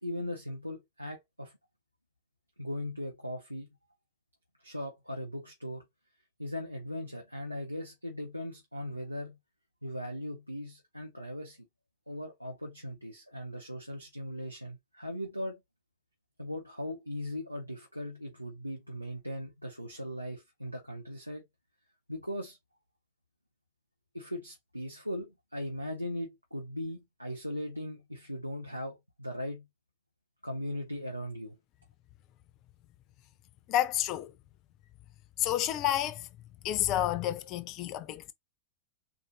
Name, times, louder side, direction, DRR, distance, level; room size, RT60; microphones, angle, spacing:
voice 1, 0.0-1.5 2.6-3.7 4.6-5.8 6.4-9.4 9.8-11.7 12.1-15.6 16.4-21.4 22.1-22.6 24.1-29.7 30.4-31.6, left 1 dB, 90° right, 0.8 m, -39 dB
voice 2, 33.7-34.3 35.4-36.3 36.6-38.3, left 12 dB, 40° left, 0.6 m, -30 dB
4.1 x 2.7 x 2.8 m
figure-of-eight pair, 90°, 0 cm